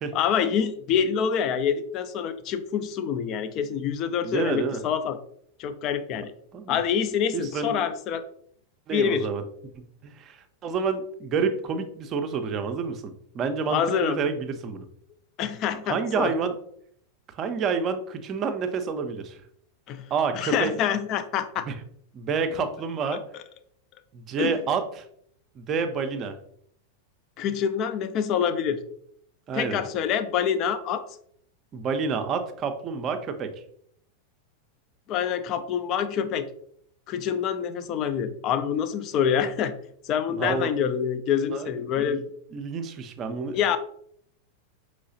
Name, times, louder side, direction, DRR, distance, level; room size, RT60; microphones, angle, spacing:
voice 1, 0.1-5.2 5.6-6.3 6.7-8.2 8.9-9.3 13.7-14.2 15.4-16.3 19.9-21.7 23.1-23.2 24.4-24.5 27.4-28.8 29.5-31.0 35.1-36.5 37.1-39.7 40.0-42.2 43.5-43.8, left 8 dB, 35° left, 11 dB, 0.4 m, -26 dB
voice 2, 4.2-4.8 6.5-6.8 7.3-7.8 8.9-9.4 9.7-14.8 15.9-16.5 17.3-19.4 20.1-20.7 21.6-21.8 22.1-23.2 24.1-25.0 25.6-26.4 29.5-29.8 31.7-33.5 40.3-40.7 41.5-41.7 42.0-43.6, right 5 dB, 30° right, 7 dB, 0.6 m, -29 dB
5.4 x 3.1 x 2.6 m, 0.66 s
figure-of-eight pair, 90°, 0 cm